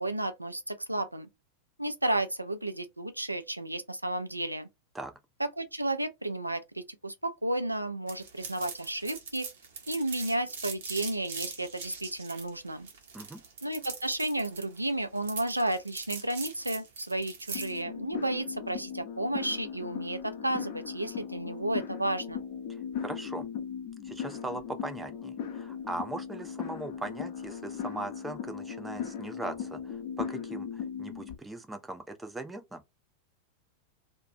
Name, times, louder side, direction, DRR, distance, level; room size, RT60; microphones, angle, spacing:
voice 1, 0.0-1.3 1.8-4.7 5.4-9.5 9.9-12.9 13.6-22.4, right 1 dB, 85° right, 0.4 m, -32 dB
sound 1, 8.1-17.8, right 5 dB, 60° right, 0.8 m, -41 dB
sound 2, 17.5-31.3, left 7 dB, 45° left, 0.6 m, -38 dB
voice 2, 23.0-23.5 24.0-32.8, right 2 dB, 10° right, 0.5 m, -39 dB
2.4 x 2.2 x 2.6 m
figure-of-eight pair, 90°, 0 cm